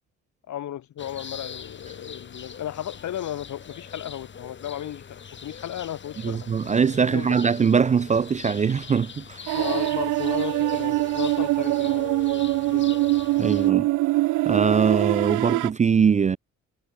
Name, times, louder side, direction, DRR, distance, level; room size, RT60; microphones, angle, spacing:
voice 1, 0.5-6.5 7.0-7.4 9.5-13.0, left 11 dB, 70° left, 3.8 m, -35 dB
sound 1, 1.0-13.7, left 7 dB, 40° left, 1.6 m, -41 dB
voice 2, 6.2-9.5 13.4-13.9 14.5-16.4, right 6 dB, 25° right, 0.4 m, -22 dB
sound 2, 9.5-15.7, right 19 dB, 90° right, 0.6 m, -23 dB
cardioid pair, 90°, 30 cm